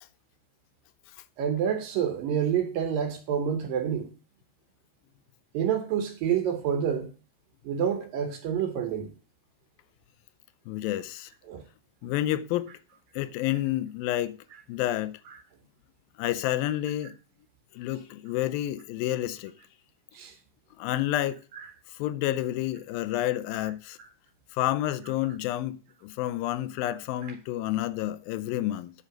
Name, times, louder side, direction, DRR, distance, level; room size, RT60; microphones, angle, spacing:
voice 1, 1.4-4.1 5.5-7.1 7.6-9.1 11.5-11.6 20.1-20.3 21.6-21.7 24.0-24.1, right 8 dB, 75° right, 2.7 m, -28 dB
voice 2, 10.7-11.3 12.0-12.7 13.2-14.4 14.7-15.1 16.2-17.1 17.7-19.5 20.8-21.4 21.9-24.0 24.5-25.8 26.0-28.9, left 14 dB, 85° left, 2.4 m, -29 dB
8.2 x 5.6 x 5.1 m
omnidirectional pair, 4.1 m